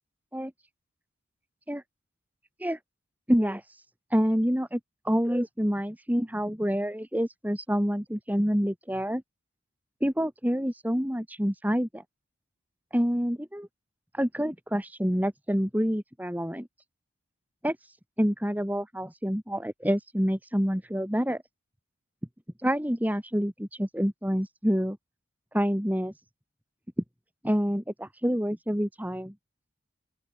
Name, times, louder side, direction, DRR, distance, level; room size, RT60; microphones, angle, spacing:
voice 1, 3.3-3.6 4.1-4.8 5.0-9.2 10.0-12.0 12.9-13.7 14.1-16.7 17.6-17.8 18.2-21.4 22.6-25.0 25.5-26.1 27.4-29.3, equal, 10° right, 3.2 m, -27 dB
open air
head